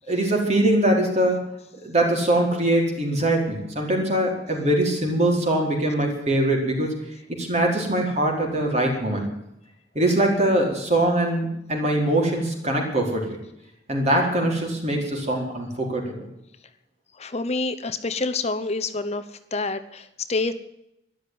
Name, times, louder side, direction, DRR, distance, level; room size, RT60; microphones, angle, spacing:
voice 1, 0.1-1.4 1.8-6.9 7.4-9.3 9.9-13.4 13.9-16.2, right 1 dB, 40° right, 1 dB, 4.6 m, -22 dB
voice 2, 17.2-19.2 19.5-20.5, left 3 dB, 40° left, 11 dB, 0.9 m, -27 dB
13.0 x 12.0 x 9.4 m, 0.83 s
head